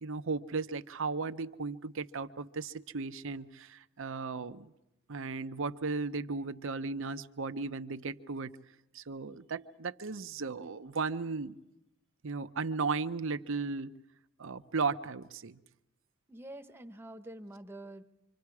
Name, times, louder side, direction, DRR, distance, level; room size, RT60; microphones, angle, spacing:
voice 1, 0.0-4.7 5.1-8.6 8.9-11.6 12.2-13.9 14.4-15.6, right 4 dB, 65° right, 11 dB, 0.8 m, -36 dB
voice 2, 16.3-18.0, right 1 dB, 10° right, 6 dB, 1.1 m, -46 dB
26.5 x 25.5 x 4.8 m, 0.87 s
head